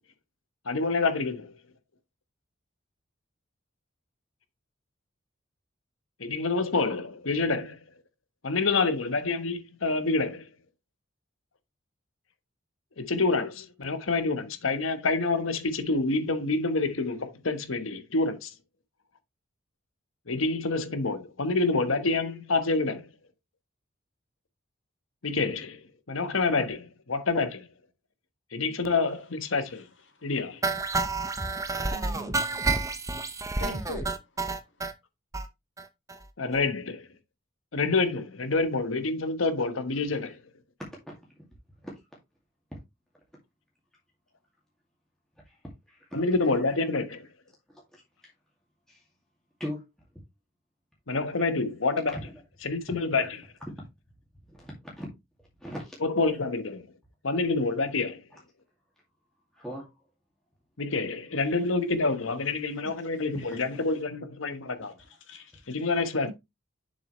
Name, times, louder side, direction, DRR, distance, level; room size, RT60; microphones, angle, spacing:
voice 1, 0.7-1.5 6.2-7.8 8.4-10.5 13.0-18.5 20.3-23.0 25.2-27.7 28.5-29.8 30.2-30.6 36.4-37.1 37.7-40.4 46.1-47.2 51.1-52.1 52.6-53.3 56.0-56.8 57.2-58.2 60.8-64.9 65.7-66.3, left 3 dB, 85° left, 1.2 m, -27 dB
sound 1, 30.6-34.9 35.3-35.5 35.8-35.9 36.1-36.2 36.5-36.6, right 3 dB, 15° right, 0.7 m, -29 dB
voice 2, 31.9-32.4 33.6-34.2 65.3-65.8 66.2-66.3, left 1 dB, 70° left, 1.9 m, -40 dB
voice 3, 41.1-41.5 41.8-42.0 42.7-42.8 45.5-45.6 45.9-46.2 47.7-48.3 48.9-49.0 49.6-49.9 51.4-51.5 52.1-52.4 52.9-53.1 54.5-55.1 55.6-56.0 56.3-56.4 59.5-59.9 63.3-63.8, equal, 5° left, 2.1 m, -41 dB
7.1 x 6.4 x 3.1 m
head